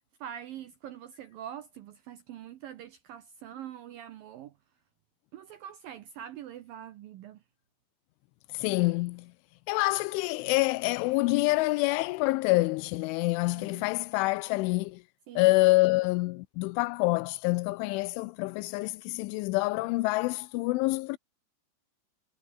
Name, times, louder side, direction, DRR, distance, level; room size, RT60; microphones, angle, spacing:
voice 1, 0.2-4.5 5.3-7.4 13.5-13.9 15.3-15.5, right 10 dB, 75° right, 2.1 m, -44 dB
voice 2, 8.5-9.3 9.7-15.0 15.4-21.2, left 22 dB, 85° left, 3.1 m, -27 dB
omnidirectional pair, 5.5 m